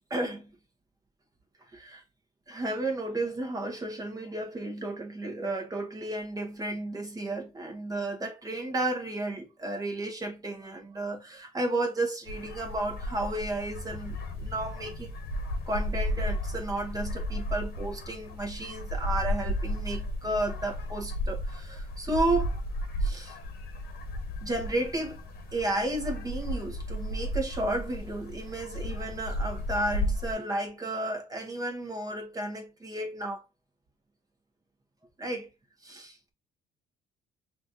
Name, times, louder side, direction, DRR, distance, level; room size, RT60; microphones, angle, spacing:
voice 1, 0.1-0.5 1.7-2.0 2.5-15.1 15.7-22.6 23.0-23.4 24.4-25.2 25.5-33.4 35.2-35.5 35.8-36.2, right 1 dB, 20° right, 1.0 m, -33 dB
sound 1, 12.3-30.3, equal, 70° left, 1.1 m, -34 dB
5.8 x 2.5 x 2.7 m
cardioid pair, 110°, 17 cm